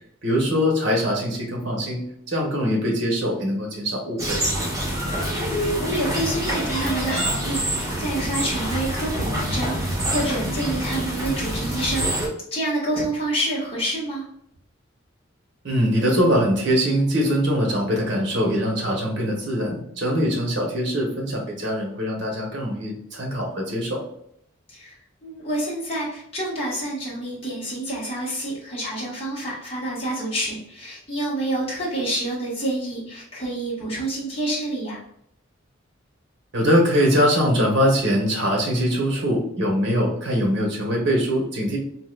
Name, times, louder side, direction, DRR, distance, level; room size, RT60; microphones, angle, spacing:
voice 1, 0.2-4.4 15.6-24.0 36.5-41.8, equal, 60° right, 0 dB, 1.0 m, -22 dB
sound 1, 4.2-12.3, right 1 dB, 15° right, 0.9 m, -26 dB
voice 2, 5.5-12.1 12.5-14.2 24.7-24.9 25.2-35.0, right 1 dB, 30° left, -6 dB, 1.2 m, -28 dB
3.8 x 2.6 x 2.2 m, 0.72 s
head